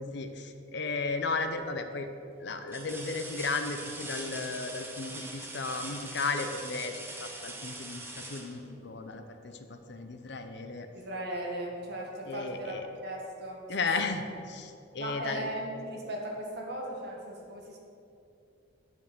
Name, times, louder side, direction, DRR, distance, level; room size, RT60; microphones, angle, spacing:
voice 1, 0.0-2.1 2.4-10.9 12.3-12.8 13.7-15.5, left 3 dB, 55° left, 7 dB, 0.6 m, -35 dB
sound 1, 0.9-1.4 2.0-2.1 2.7-9.4 11.1-11.3 11.7-12.8 14.1-14.2, right 2 dB, 10° right, 0.9 m, -43 dB
voice 2, 10.9-13.6 14.0-14.2 15.0-17.8, right 1 dB, 55° right, -1 dB, 1.7 m, -37 dB
9.0 x 5.4 x 6.7 m, 2.6 s
head